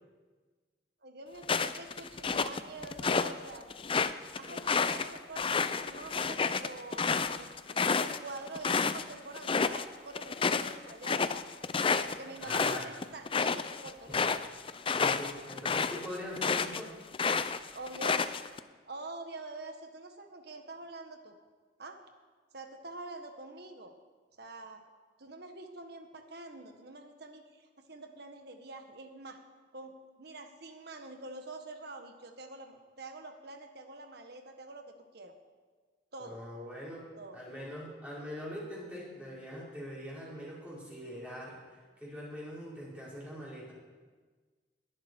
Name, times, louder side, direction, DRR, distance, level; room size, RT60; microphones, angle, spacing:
voice 1, 1.0-3.7 4.4-11.3 11.8-14.2 17.7-18.2 18.9-21.4 21.8-22.0 22.5-23.9 24.4-24.8 25.2-29.4 29.7-34.8 35.1-35.3 36.1-36.4 37.2-37.4, right 2 dB, 60° right, 5 dB, 1.5 m, -46 dB
sound 1, 1.4-3.3 3.7-9.0 9.3-9.8 10.1-16.8 17.1-18.6, left 5 dB, 30° left, 0.5 m, -30 dB
voice 2, 12.2-12.9 14.9-16.9 36.2-43.7, equal, 10° right, -7 dB, 4.7 m, -43 dB
20.5 x 11.0 x 4.7 m, 1.4 s
head